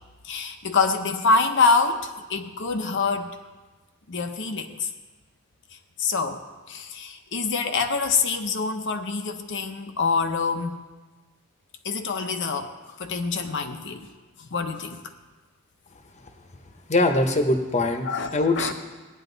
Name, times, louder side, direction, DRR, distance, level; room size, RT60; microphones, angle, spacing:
voice 1, 0.2-3.4 4.1-4.9 6.0-10.8 11.8-14.1 14.4-15.0 18.0-18.7, left 4 dB, 60° left, 6 dB, 0.8 m, -26 dB
voice 2, 16.9-18.7, left 2 dB, 35° left, 6 dB, 1.0 m, -22 dB
17.5 x 10.0 x 4.0 m, 1.3 s
head